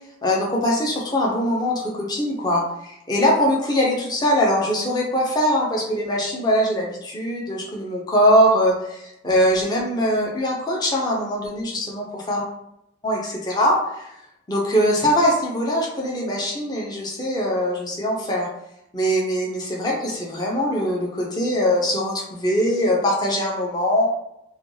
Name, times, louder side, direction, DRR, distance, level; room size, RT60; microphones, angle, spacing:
voice 1, 0.2-12.4 13.0-14.1 14.5-18.5 18.9-24.1, equal, 20° left, -3 dB, 0.5 m, -22 dB
2.5 x 2.2 x 3.0 m, 0.83 s
head